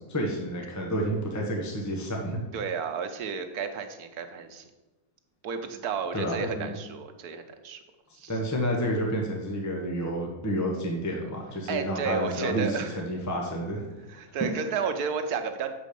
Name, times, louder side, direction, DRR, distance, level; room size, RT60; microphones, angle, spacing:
voice 1, 0.1-2.4 6.1-6.7 8.3-13.9 14.4-14.5, equal, 10° left, 0 dB, 1.1 m, -30 dB
voice 2, 2.5-4.6 5.4-7.8 8.1-8.4 11.7-13.0 14.1-15.7, right 6 dB, 85° right, 7 dB, 1.4 m, -32 dB
7.3 x 5.1 x 6.8 m, 1.1 s
omnidirectional pair, 1.6 m